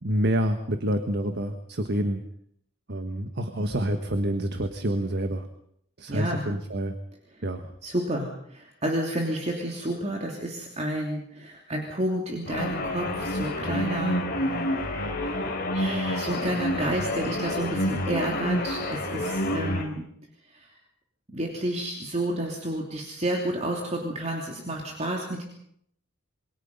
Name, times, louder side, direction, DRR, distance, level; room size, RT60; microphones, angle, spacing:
voice 1, 0.0-2.2 2.9-5.5 6.0-6.9 7.4-7.7, right 1 dB, 55° right, 7 dB, 1.5 m, -27 dB
voice 2, 6.1-6.4 7.8-20.1 20.4-20.8 21.3-25.4, right 1 dB, 35° right, 0 dB, 3.0 m, -31 dB
sound 1, 12.5-19.9, left 1 dB, 45° left, 3.4 m, -28 dB
27.0 x 23.0 x 5.5 m, 0.68 s
head